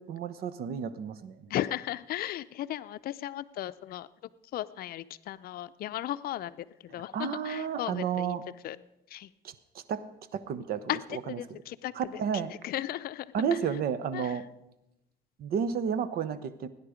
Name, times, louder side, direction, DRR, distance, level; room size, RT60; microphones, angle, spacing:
voice 1, 0.0-1.5 6.9-8.4 9.4-10.0 10.3-11.6 11.9-12.5 13.3-14.5 15.4-16.7, right 7 dB, 65° right, 14 dB, 0.9 m, -32 dB
voice 2, 1.5-4.1 4.5-6.5 6.9-8.3 8.6-8.8 9.1-9.3 10.9-11.0 11.3-11.9 12.6-13.3 14.1-14.3, left 13 dB, 60° left, 14 dB, 0.5 m, -35 dB
17.5 x 10.0 x 5.1 m, 0.90 s
cardioid pair, 110°, 17 cm